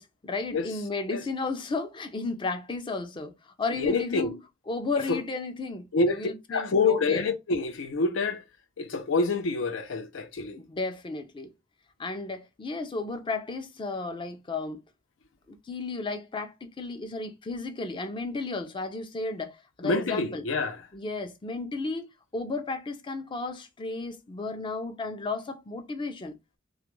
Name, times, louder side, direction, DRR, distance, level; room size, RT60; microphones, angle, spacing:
voice 1, 0.0-4.4 4.7-7.3 10.6-11.5 12.0-14.8 15.5-20.4 20.9-26.4, left 3 dB, 25° left, 0.4 m, -34 dB
voice 2, 3.8-4.3 5.1-5.2 5.9-8.4 8.8-10.6 19.8-20.8, left 3 dB, 80° left, 0.5 m, -27 dB
2.3 x 2.2 x 3.0 m
head